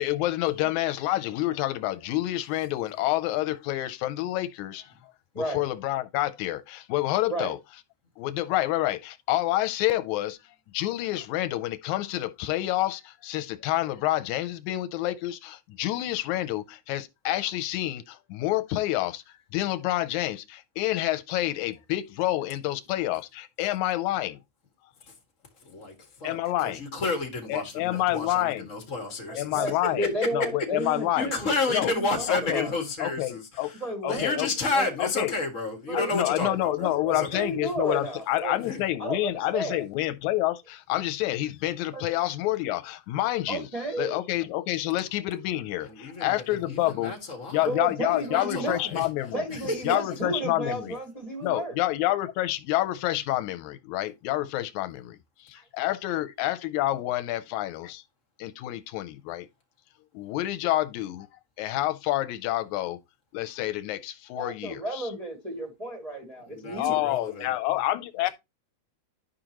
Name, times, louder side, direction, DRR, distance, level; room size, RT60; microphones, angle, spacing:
voice 1, 0.0-4.9 5.4-7.6 8.2-10.4 10.7-24.4 26.2-26.8 27.5-28.7 29.4-31.3 31.7-31.9 32.3-32.7 33.0-33.7 34.0-34.5 35.0-35.3 35.9-43.7 44.0-47.1 47.5-49.5 49.8-51.0 51.4-58.0 58.4-59.5 60.1-61.3 61.6-63.0 63.3-65.1 66.7-68.3, left 15 dB, 85° left, 2.0 m, -28 dB
voice 2, 25.6-29.6 30.8-33.8 34.1-37.4 38.6-38.8 45.8-47.7 48.1-49.1 49.5-50.0 66.5-67.6, left 3 dB, 30° left, 1.7 m, -31 dB
voice 3, 29.3-32.7 33.8-34.4 34.7-34.9 35.9-38.6 39.0-39.8 41.9-42.0 43.5-44.2 47.6-48.8 49.3-51.7 55.5-55.6 64.4-67.0, right 1 dB, 75° right, 0.3 m, -33 dB
11.0 x 5.1 x 3.0 m
omnidirectional pair, 3.4 m